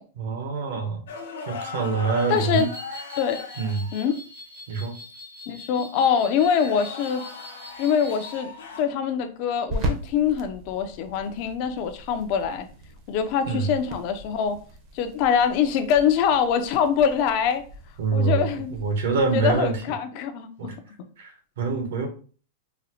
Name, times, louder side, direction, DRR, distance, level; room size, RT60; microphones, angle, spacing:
voice 1, 0.1-1.0 1.5-2.7 3.6-3.9 4.7-5.0 13.5-13.7 18.0-18.4 18.7-19.8 20.6-20.8 21.2-22.1, right 4 dB, 70° right, 4 dB, 0.9 m, -25 dB
sound 1, 1.1-4.2 6.2-8.9 11.3-11.5 13.8-14.1 17.0-17.2 19.3-19.6, left 5 dB, 85° left, 0.8 m, -39 dB
sound 2, 2.2-8.4, equal, 85° right, 1.7 m, -43 dB
voice 2, 2.3-2.7 3.2-3.4 3.9-4.2 5.5-7.2 7.8-8.5 8.8-12.7 13.1-14.6 14.9-17.6 18.1-18.7 19.3-20.7, left 7 dB, 40° left, 9 dB, 0.4 m, -24 dB
sound 3, 7.6-19.8, right 1 dB, 35° right, 0.6 m, -39 dB
3.9 x 2.0 x 2.7 m, 0.40 s
supercardioid pair, 155°, 0 cm